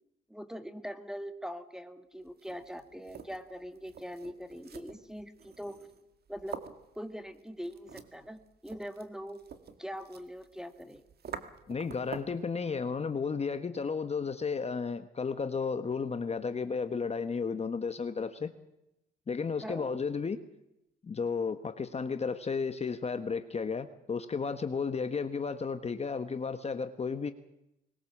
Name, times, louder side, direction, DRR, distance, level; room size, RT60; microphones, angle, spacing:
voice 1, 0.3-5.8 6.3-6.6 7.0-9.4 9.8-11.0 19.6-20.0, equal, 5° right, 9 dB, 1.9 m, -42 dB
sound 1, 2.3-12.5, right 6 dB, 55° right, 1.9 m, -48 dB
voice 2, 11.7-18.5 19.3-20.4 21.0-27.3, left 5 dB, 30° left, 9 dB, 1.3 m, -33 dB
21.0 x 20.0 x 7.4 m, 0.85 s
cardioid pair, 90°, 20 cm